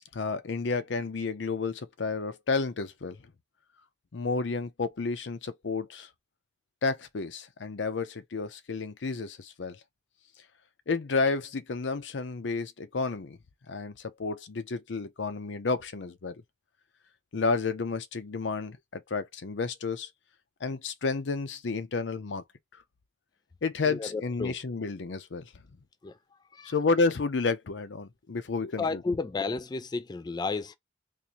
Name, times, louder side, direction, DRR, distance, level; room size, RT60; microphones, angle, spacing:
voice 1, 0.1-3.2 4.1-6.1 6.8-9.8 10.9-13.4 13.7-16.4 17.3-20.1 20.6-22.4 23.6-25.5 26.6-29.0, left 4 dB, 90° left, 0.6 m, -31 dB
voice 2, 23.9-24.6 26.0-26.1 26.5-26.7 28.8-30.7, left 4 dB, 25° left, 0.3 m, -32 dB
3.7 x 2.6 x 2.9 m
head